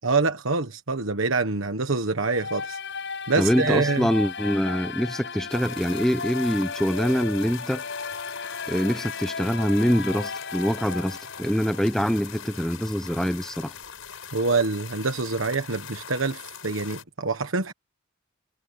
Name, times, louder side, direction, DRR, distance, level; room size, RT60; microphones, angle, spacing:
voice 1, 0.0-2.8 3.3-4.1 14.3-17.7, right 3 dB, 70° right, 1.4 m, -25 dB
sound 1, 2.2-12.2, left 5 dB, 60° left, 7.5 m, -35 dB
voice 2, 3.3-7.8 8.7-13.7, equal, ahead, 1.0 m, -24 dB
sound 2, 5.5-17.0, left 7 dB, 80° left, 6.3 m, -42 dB
head